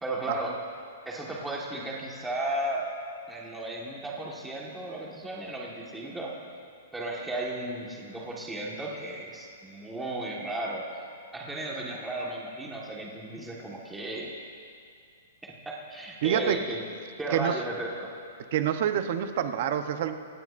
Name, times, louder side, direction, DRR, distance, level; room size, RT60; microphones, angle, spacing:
voice 1, 0.0-0.6 1.0-2.9 3.3-6.3 6.9-10.9 11.3-14.3 15.4-16.8 17.2-18.1, right 1 dB, 5° right, -3 dB, 1.5 m, -34 dB
voice 2, 16.2-16.6 17.3-17.6 18.5-20.1, right 10 dB, 45° right, 8 dB, 0.8 m, -27 dB
25.0 x 18.0 x 2.6 m, 2.3 s
hypercardioid pair, 170°, 0 cm